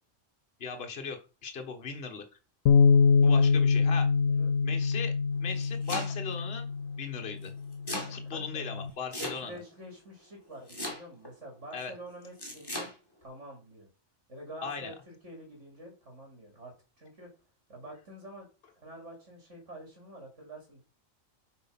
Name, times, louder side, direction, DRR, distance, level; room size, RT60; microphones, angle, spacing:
voice 1, 0.6-2.2 3.2-4.1 4.6-5.1 5.4-6.7 6.9-7.5 8.1-9.6 11.7-11.9 14.6-14.9, left 5 dB, 50° left, 4 dB, 1.5 m, -38 dB
Bass guitar, 2.7-8.9, left 5 dB, 80° left, 1.0 m, -25 dB
voice 2, 4.2-4.5 8.2-8.7 9.2-12.9 13.2-13.9 14.3-17.3 17.7-18.5 18.7-20.8, right 1 dB, 65° right, 1 dB, 3.3 m, -47 dB
Domestic sounds home sounds, 5.4-6.4 7.4-8.1 9.1-9.7 10.7-11.3 12.4-12.9, left 1 dB, 20° left, 2.8 m, -37 dB
7.6 x 5.1 x 5.7 m, 0.33 s
omnidirectional pair, 1.3 m